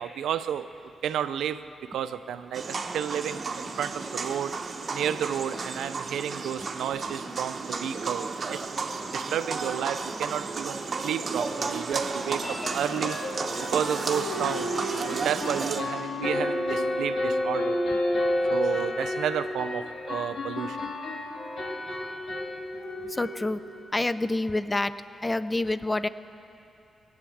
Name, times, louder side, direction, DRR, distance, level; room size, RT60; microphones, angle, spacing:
voice 1, 0.0-4.6 4.9-8.6 8.9-13.2 13.7-14.7 15.1-17.8 18.5-20.9, right 9 dB, 90° right, 12 dB, 0.4 m, -31 dB
sound 1, 2.5-15.8, right 4 dB, 45° right, 0.9 m, -33 dB
sound 2, 8.5-8.6 9.0-9.1 9.4-9.5 12.4-23.9, left 1 dB, 60° left, 1.7 m, -31 dB
voice 2, 23.0-23.6 23.9-26.1, left 2 dB, 20° left, 14 dB, 0.4 m, -28 dB
18.5 x 7.9 x 8.6 m, 2.9 s
cardioid pair, 80°, 0 cm